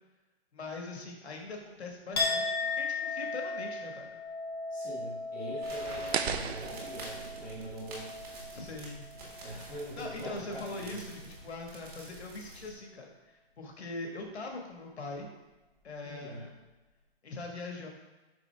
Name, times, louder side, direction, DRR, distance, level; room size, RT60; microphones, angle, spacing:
voice 1, 0.5-4.1 8.5-9.1 10.0-15.3 15.8-16.5 17.2-17.9, left 3 dB, 85° left, 1 dB, 1.6 m, -42 dB
Chink clink, 2.1-9.8 10.2-10.8, left 3 dB, 25° left, 0.8 m, -37 dB
voice 2, 4.7-8.1 9.4-11.0 16.0-16.5, right 1 dB, 5° right, -13 dB, 1.2 m, -43 dB
sound 1, 5.6-12.7, right 2 dB, 35° right, 1.9 m, -46 dB
sound 2, 6.1-9.2, right 7 dB, 80° right, 0.6 m, -38 dB
6.2 x 5.4 x 3.3 m, 1.1 s
hypercardioid pair, 175°, 32 cm